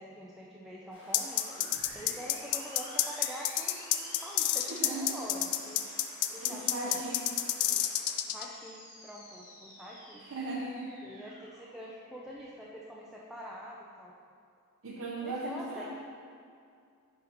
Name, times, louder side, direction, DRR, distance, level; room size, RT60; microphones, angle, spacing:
voice 1, 0.0-1.4 1.9-7.0 7.7-7.8 8.3-10.2 11.0-14.1 15.2-15.9, equal, ahead, -4 dB, 0.4 m, -45 dB
sound 1, 0.9-8.1, left 1 dB, 60° left, 1.5 m, -53 dB
sound 2, 1.0-12.7, left 1 dB, 40° left, 1.4 m, -51 dB
sound 3, 1.1-8.5, left 12 dB, 75° left, 0.4 m, -29 dB
voice 2, 4.7-5.1 6.4-7.2 10.2-11.0 14.8-15.9, right 2 dB, 65° right, -5 dB, 0.7 m, -37 dB
9.9 x 4.0 x 2.9 m, 2.4 s
head